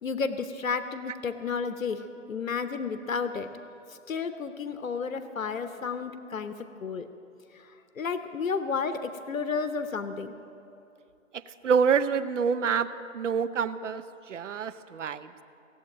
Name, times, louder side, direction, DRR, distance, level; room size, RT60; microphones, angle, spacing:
voice 1, 0.0-3.5 3.9-7.1 7.5-10.3, left 5 dB, 85° left, 10 dB, 1.0 m, -32 dB
voice 2, 11.3-12.9 13.1-15.3, right 6 dB, 65° right, 13 dB, 0.7 m, -27 dB
17.5 x 8.2 x 9.0 m, 2.7 s
hypercardioid pair, 145°, 39 cm